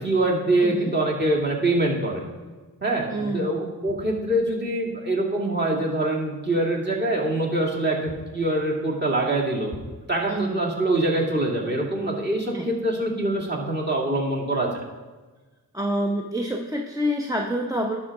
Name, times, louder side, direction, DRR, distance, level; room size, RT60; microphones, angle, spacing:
voice 1, 0.0-2.2 2.8-9.7 10.1-14.8, right 1 dB, 25° right, -3 dB, 2.3 m, -24 dB
voice 2, 3.1-3.7 10.3-10.8 12.5-12.7 15.7-18.0, equal, 10° right, 1 dB, 0.8 m, -27 dB
11.0 x 3.8 x 6.0 m, 1.3 s
cardioid pair, 50°, 39 cm